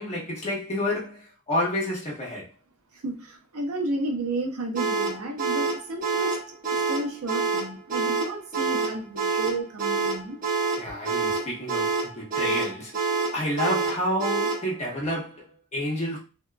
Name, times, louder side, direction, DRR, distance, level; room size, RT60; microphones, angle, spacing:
voice 1, 0.0-2.4 10.8-12.9 13.3-16.2, left 1 dB, 30° left, 1.1 m, -29 dB
voice 2, 3.0-10.4, right 2 dB, 85° right, 0.7 m, -32 dB
sound 1, 4.7-14.7, right 4 dB, 40° right, 0.9 m, -27 dB
2.8 x 2.2 x 2.2 m
head